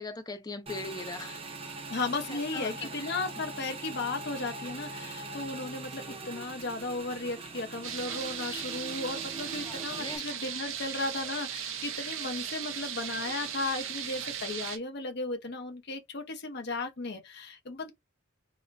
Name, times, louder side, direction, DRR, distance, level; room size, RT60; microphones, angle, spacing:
voice 1, 0.0-1.4 2.3-3.1 9.6-10.3, left 3 dB, 20° left, 0.5 m, -40 dB
Motorcycle / Engine, 0.7-10.2, right 3 dB, 30° right, 0.6 m, -42 dB
voice 2, 1.9-17.9, left 3 dB, 55° left, 0.7 m, -35 dB
sound 1, 7.8-14.8, right 9 dB, 70° right, 0.6 m, -37 dB
4.8 x 2.1 x 2.5 m
head